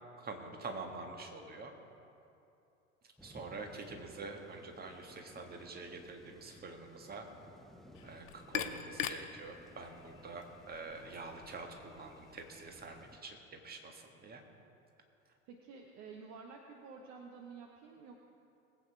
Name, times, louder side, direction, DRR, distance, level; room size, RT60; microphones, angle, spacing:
voice 1, 0.2-1.7 3.2-7.3 8.0-14.4, right 3 dB, 20° right, 3 dB, 1.8 m, -46 dB
sound 1, 3.2-13.2, left 1 dB, ahead, 0.7 m, -59 dB
sound 2, 7.9-13.1, left 9 dB, 65° left, 0.9 m, -44 dB
voice 2, 15.5-18.2, right 5 dB, 40° right, 2 dB, 1.2 m, -51 dB
20.0 x 8.5 x 4.7 m, 2.7 s
figure-of-eight pair, 75°, 41 cm